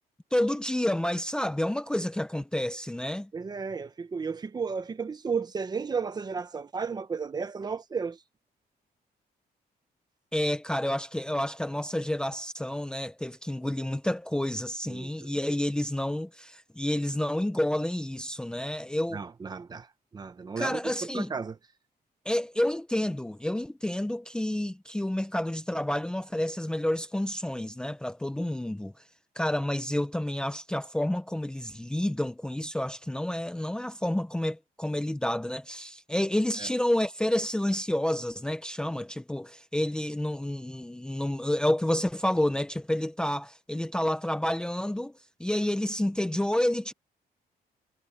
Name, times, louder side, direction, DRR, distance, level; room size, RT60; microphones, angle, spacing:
voice 1, 0.3-3.3 10.3-19.2 20.6-21.3 22.3-28.9 29.4-45.1 45.4-46.9, left 1 dB, 5° left, 0.7 m, -29 dB
voice 2, 3.3-8.2 14.9-15.3 19.1-19.9 20.1-21.6 36.6-36.7, right 5 dB, 25° right, 1.0 m, -33 dB
cardioid pair, 170°, 16 cm